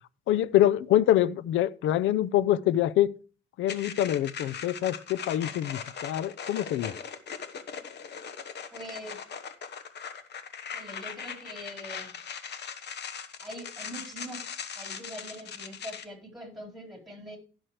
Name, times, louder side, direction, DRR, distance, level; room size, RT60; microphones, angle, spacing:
voice 1, 0.3-3.1 3.6-6.9, left 12 dB, 80° left, 0.6 m, -25 dB
sound 1, 3.7-16.0, left 7 dB, 60° left, 1.1 m, -40 dB
voice 2, 8.7-9.2 10.7-12.2 13.4-17.4, equal, ahead, 4.2 m, -43 dB
15.5 x 6.2 x 3.2 m
cardioid pair, 90°, 20 cm